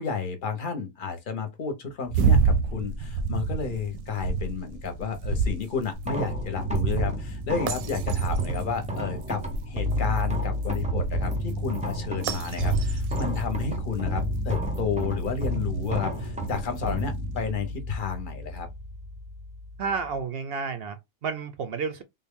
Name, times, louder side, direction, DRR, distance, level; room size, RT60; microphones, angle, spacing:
voice 1, 0.0-18.7, left 6 dB, 45° left, 0.8 m, -31 dB
sound 1, 2.1-17.2, right 5 dB, 85° right, 1.0 m, -30 dB
sound 2, 5.9-20.2, left 1 dB, 10° right, 0.3 m, -31 dB
voice 2, 19.8-22.0, right 5 dB, 60° right, 0.6 m, -31 dB
3.6 x 2.2 x 3.6 m
omnidirectional pair, 1.5 m